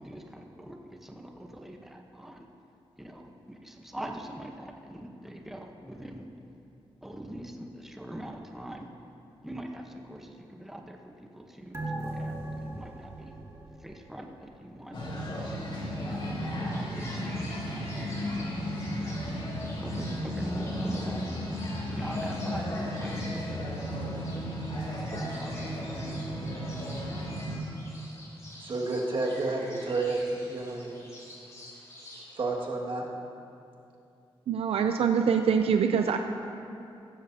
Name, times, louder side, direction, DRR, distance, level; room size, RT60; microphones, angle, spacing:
voice 1, 0.0-2.5 3.0-6.3 7.0-8.9 9.4-13.4 13.8-15.0 15.4-15.6 16.0-19.2 19.5-21.3 21.9-24.5 25.1-25.7, right 1 dB, 5° right, 2 dB, 0.9 m, -44 dB
sound 1, 11.7-14.7 15.0-15.1, right 2 dB, 30° right, 1.9 m, -38 dB
sound 2, 14.9-27.5, equal, 55° left, 2.9 m, -34 dB
sound 3, 16.7-32.4, left 1 dB, 30° left, 3.2 m, -48 dB
voice 2, 28.6-30.9 32.4-33.1, right 2 dB, 60° right, -2 dB, 1.9 m, -30 dB
voice 3, 34.5-36.2, right 7 dB, 80° right, 6 dB, 0.5 m, -24 dB
16.0 x 14.0 x 2.8 m, 2.7 s
wide cardioid pair, 125°, 10 cm